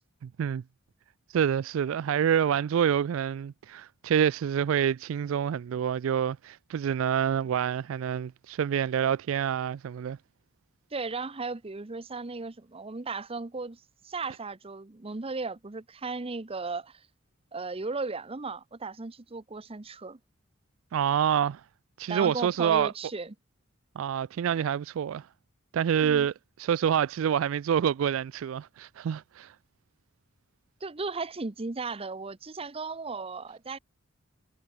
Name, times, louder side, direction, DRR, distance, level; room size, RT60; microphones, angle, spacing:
voice 1, 0.2-0.6 1.3-10.2 20.9-21.6 22.0-22.9 24.0-25.3 25.7-26.3 26.6-29.5, right 8 dB, 70° right, 0.3 m, -27 dB
voice 2, 10.9-13.8 14.0-17.1 17.5-20.2 22.1-23.3 30.8-33.8, right 4 dB, 30° right, 0.8 m, -36 dB
head